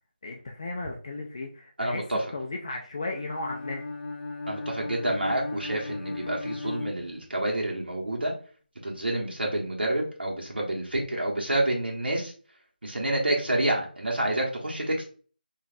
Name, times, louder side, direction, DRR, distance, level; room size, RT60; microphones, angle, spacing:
voice 1, 0.2-2.0 2.3-3.8, left 2 dB, 35° left, 0 dB, 0.3 m, -35 dB
voice 2, 1.8-2.2 4.5-8.3 8.8-12.3 12.8-15.0, right 1 dB, 80° right, -2 dB, 1.0 m, -28 dB
Bowed string instrument, 3.1-7.7, left 3 dB, 85° left, 0.6 m, -36 dB
3.1 x 2.4 x 2.5 m, 0.40 s
figure-of-eight pair, 165°, 5 cm